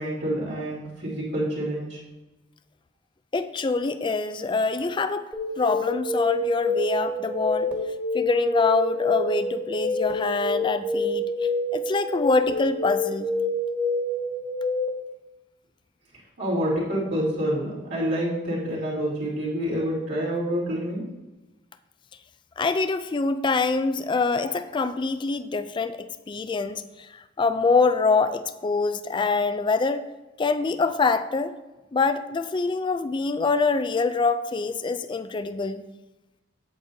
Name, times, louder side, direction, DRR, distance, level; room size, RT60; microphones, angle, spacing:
voice 1, 0.0-2.0 16.4-21.0, equal, 60° right, -7 dB, 3.0 m, -27 dB
voice 2, 3.3-5.3 5.6-7.7 8.1-13.3 22.6-30.0 30.4-31.5 31.9-35.8, left 4 dB, 25° left, 11 dB, 0.3 m, -25 dB
sound 1, 5.3-14.9, left 1 dB, 10° right, 1.5 m, -27 dB
8.5 x 8.4 x 2.7 m, 1.1 s
head